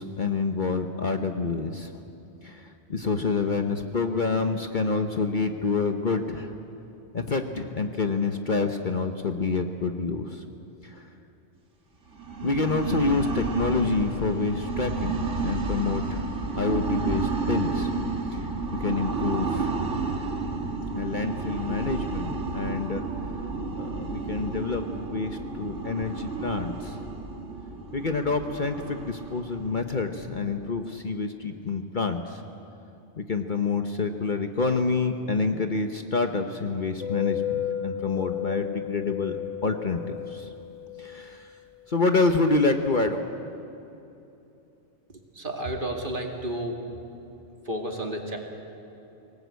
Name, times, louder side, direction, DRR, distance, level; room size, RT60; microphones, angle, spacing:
voice 1, 0.0-2.0 2.4-6.5 7.1-10.4 12.4-16.3 16.6-17.9 18.3-18.4 18.8-19.7 20.9-23.0 23.8-27.1 27.9-32.4 33.2-39.4 39.6-40.5 41.0-41.5 41.9-43.3, left 4 dB, 45° left, 6 dB, 1.1 m, -27 dB
sound 1, 12.1-30.8, right 3 dB, 75° right, 2.3 m, -31 dB
sound 2, 37.0-41.4, left 11 dB, 25° left, 1.3 m, -33 dB
voice 2, 45.1-47.0 47.6-48.4, right 1 dB, 45° right, 2 dB, 2.5 m, -32 dB
25.0 x 19.0 x 8.2 m, 2.9 s
omnidirectional pair, 1.3 m